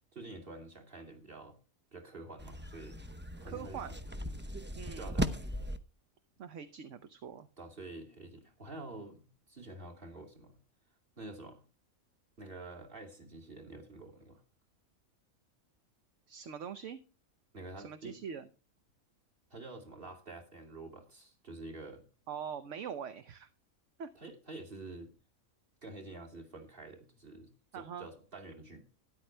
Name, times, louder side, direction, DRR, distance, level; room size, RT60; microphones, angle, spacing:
voice 1, 0.1-1.6 1.9-3.0 3.4-3.8 5.0-5.3 7.6-10.5 11.2-11.6 12.4-14.4 17.5-18.2 19.5-22.0 24.1-25.1 25.8-28.8, right 2 dB, 40° right, 2 dB, 2.9 m, -48 dB
sound 1, 2.4-5.8, right 1 dB, 10° right, 0.5 m, -38 dB
voice 2, 3.4-3.9 4.8-5.1 6.4-7.5 16.3-17.0 17.8-18.5 22.3-23.5 24.0-24.1 27.7-28.1, right 7 dB, 65° right, 10 dB, 1.1 m, -43 dB
13.0 x 10.5 x 3.3 m, 0.34 s
omnidirectional pair, 1.4 m